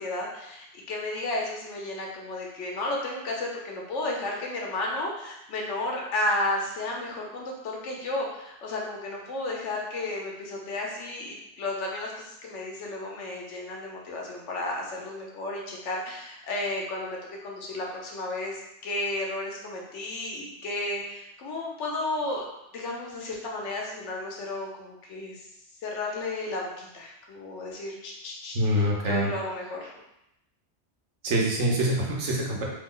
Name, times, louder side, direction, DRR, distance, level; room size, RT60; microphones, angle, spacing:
voice 1, 0.0-22.4 22.7-25.4 25.8-29.9, left 2 dB, 90° left, -1 dB, 1.0 m, -33 dB
voice 2, 28.5-29.3 31.2-32.7, right 1 dB, 90° right, -2 dB, 1.0 m, -25 dB
2.9 x 2.0 x 3.7 m, 0.85 s
omnidirectional pair, 1.2 m